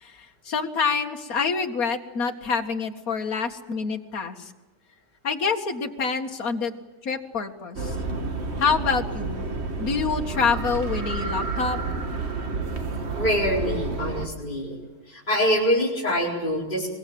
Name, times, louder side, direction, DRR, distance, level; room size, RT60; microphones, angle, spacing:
voice 1, 0.5-4.5 5.2-6.7 7.0-7.9 8.6-9.5 9.8-11.8, left 5 dB, 60° left, 5 dB, 2.3 m, -26 dB
sound 1, 7.8-14.3, right 3 dB, 40° right, 2.0 m, -30 dB
voice 2, 13.2-14.8 15.1-16.9, equal, 30° left, -5 dB, 4.9 m, -24 dB
24.0 x 22.5 x 7.8 m, 1.1 s
omnidirectional pair, 1.8 m